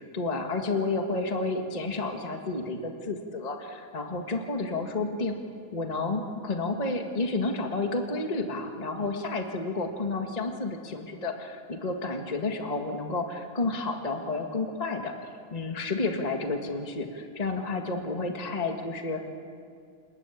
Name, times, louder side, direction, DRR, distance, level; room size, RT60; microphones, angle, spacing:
voice 1, 0.0-5.4 5.7-19.2, left 3 dB, 20° left, 3 dB, 1.7 m, -31 dB
29.0 x 20.0 x 8.7 m, 2.3 s
omnidirectional pair, 2.1 m